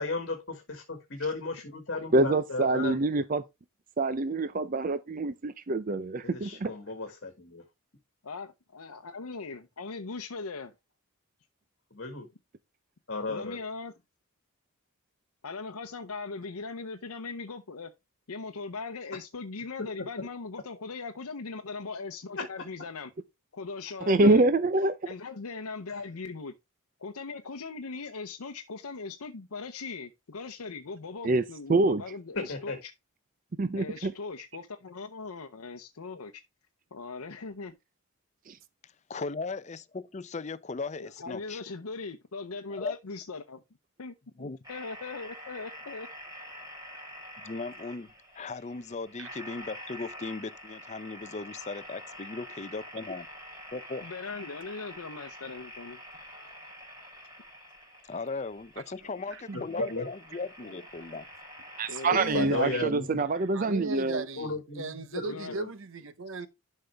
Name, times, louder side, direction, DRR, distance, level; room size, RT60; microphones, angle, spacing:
voice 1, 0.0-3.0 6.3-7.6 11.9-12.3 13.1-13.6 24.2-24.5 32.4-32.8 59.5-60.1 62.1-63.1 64.4-65.7, left 3 dB, 55° left, 1.8 m, -34 dB
voice 2, 2.1-3.4 4.0-6.7 24.1-24.9 31.2-31.4 31.7-32.0 33.6-34.1 38.5-38.6 61.8-64.2, right 2 dB, 40° right, 0.5 m, -25 dB
voice 3, 8.2-10.7 13.3-14.0 15.4-17.9 18.3-23.1 23.5-24.4 25.1-26.5 27.0-32.9 33.7-36.4 36.9-37.8 41.0-43.6 44.0-46.1 54.0-56.0 61.9-62.6 65.3-65.5, left 4 dB, 85° left, 0.7 m, -39 dB
voice 4, 39.1-41.6 42.7-43.0 44.4-44.6 47.4-48.1 48.3-53.3 53.7-54.1 58.1-61.2, left 3 dB, 30° left, 0.5 m, -37 dB
sound 1, 44.6-62.3, equal, 15° right, 4.5 m, -47 dB
voice 5, 58.9-59.7 60.6-60.7 61.1-61.2 62.0-63.1 63.3-66.5, right 3 dB, 60° right, 0.9 m, -38 dB
11.5 x 5.5 x 3.4 m
head